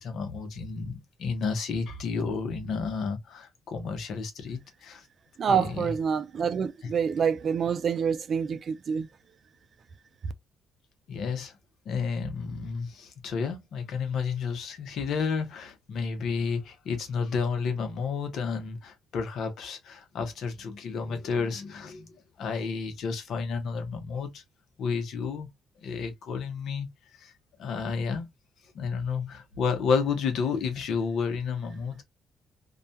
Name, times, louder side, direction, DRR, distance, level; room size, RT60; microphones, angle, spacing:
voice 1, 0.0-5.0 5.4-5.9 11.1-11.5 11.9-24.4 24.8-25.5 25.8-26.9 27.2-27.3 27.6-28.3 28.7-32.0, left 5 dB, 70° left, 0.8 m, -31 dB
voice 2, 5.4-9.1, right 7 dB, 55° right, 0.4 m, -27 dB
2.3 x 2.2 x 2.6 m
cardioid pair, 90°, 0 cm